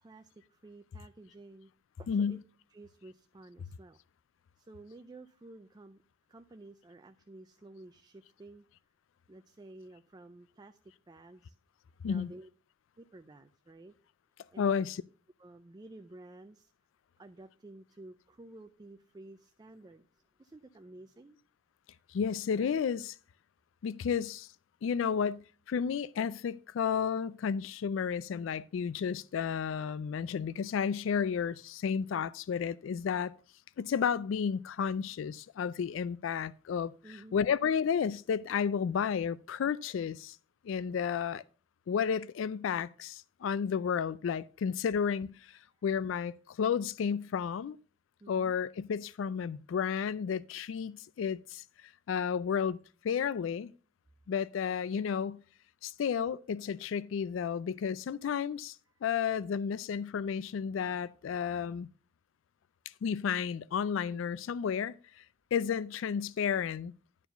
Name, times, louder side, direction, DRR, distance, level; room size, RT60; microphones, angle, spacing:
voice 1, 0.0-1.7 2.0-2.4 2.7-4.0 4.6-6.0 6.3-8.6 9.3-10.8 11.1-11.5 12.0-12.5 13.0-13.9 14.5-14.7 15.4-16.7 17.2-20.1 20.4-21.4 37.0-37.4 48.2-48.6 64.1-64.2, right 2 dB, 20° right, 0.4 m, -52 dB
voice 2, 2.1-2.4 12.0-12.3 14.6-15.0 22.1-23.1 23.8-24.5 24.8-33.3 33.8-36.9 37.3-40.4 40.6-41.4 41.9-45.5 45.8-47.8 48.3-51.6 52.1-52.8 53.0-53.7 54.3-55.4 55.8-58.8 59.0-61.9 63.0-65.2 65.5-66.9, left 7 dB, 75° left, 0.3 m, -32 dB
11.0 x 4.6 x 5.6 m
head